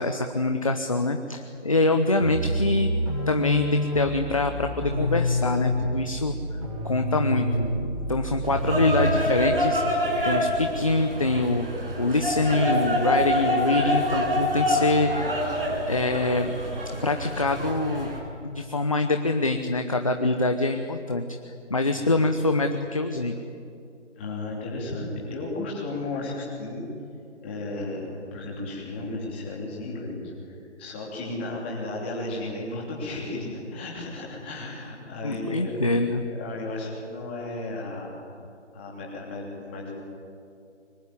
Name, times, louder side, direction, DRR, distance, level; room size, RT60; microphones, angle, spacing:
voice 1, 0.0-2.9 3.3-6.6 6.8-11.7 12.0-15.4 15.9-16.6 16.9-18.1 18.4-23.4 35.2-36.2, left 2 dB, 30° left, 6 dB, 0.9 m, -25 dB
sound 1, 2.2-9.4, equal, 30° right, 6.8 m, -28 dB
sound 2, 8.5-18.2, equal, 50° right, 7.4 m, -26 dB
voice 2, 24.2-26.8 27.4-35.7 36.4-38.1 38.7-40.0, left 2 dB, 10° left, -4 dB, 2.9 m, -34 dB
24.0 x 23.5 x 9.8 m, 2.5 s
figure-of-eight pair, 175°, 36 cm